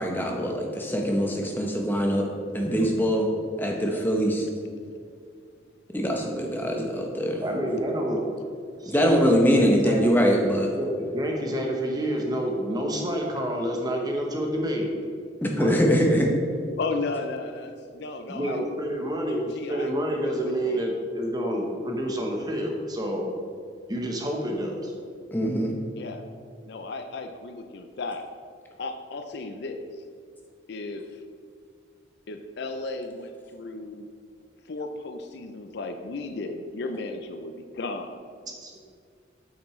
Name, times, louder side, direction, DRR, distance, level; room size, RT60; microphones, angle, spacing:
voice 1, 0.0-2.3 2.5-3.3 3.6-4.5 5.9-7.4 8.9-10.7 15.4-16.3 25.3-25.7, equal, 10° left, 1 dB, 0.8 m, -23 dB
voice 2, 7.4-8.2 8.8-10.1 10.7-14.9 15.5-15.8 18.3-23.3 23.9-24.9 38.6-38.7, equal, 20° right, 0 dB, 0.9 m, -28 dB
voice 3, 16.8-18.6 19.3-19.9 20.2-20.9 26.0-26.2 26.7-28.2 28.8-29.9 30.7-31.0 32.3-34.1 34.7-38.2, left 3 dB, 60° left, 7 dB, 0.4 m, -34 dB
8.2 x 6.0 x 3.1 m, 2.2 s
head